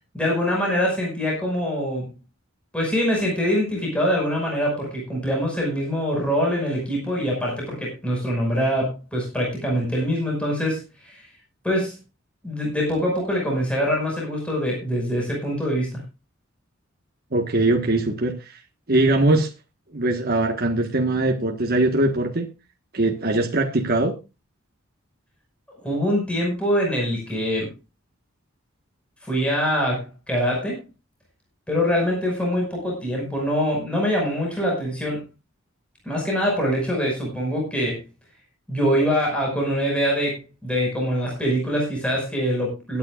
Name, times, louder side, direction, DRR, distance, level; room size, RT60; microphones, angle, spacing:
voice 1, 0.1-2.1 2.7-11.3 11.6-12.0 12.4-16.0 25.8-27.7 29.2-30.8 31.7-35.2 36.1-38.0 38.7-43.0, equal, 5° left, -2 dB, 5.5 m, -24 dB
voice 2, 17.3-18.6 18.9-19.5 19.9-22.5 22.9-24.1, right 2 dB, 50° right, 3 dB, 1.5 m, -21 dB
21.5 x 9.7 x 2.5 m, 0.28 s
head